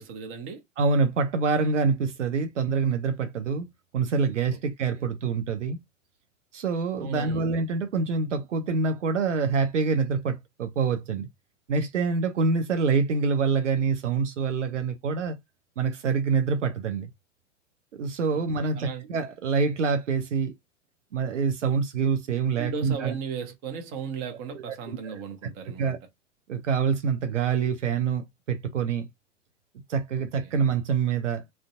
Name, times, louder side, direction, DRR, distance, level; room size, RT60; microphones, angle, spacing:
voice 1, 0.0-0.6 4.5-4.6 7.0-7.5 18.3-18.4 18.8-19.1 22.6-26.0 30.4-30.5, right 6 dB, 30° right, 0.7 m, -36 dB
voice 2, 0.8-3.7 3.9-5.8 6.5-11.3 11.7-15.4 15.8-17.1 17.9-20.5 21.1-23.1 24.7-24.8 25.0-25.2 25.8-26.0 26.5-29.1 29.9-31.4, right 5 dB, 70° right, 0.6 m, -26 dB
2.5 x 2.1 x 2.4 m
figure-of-eight pair, 95°, 38 cm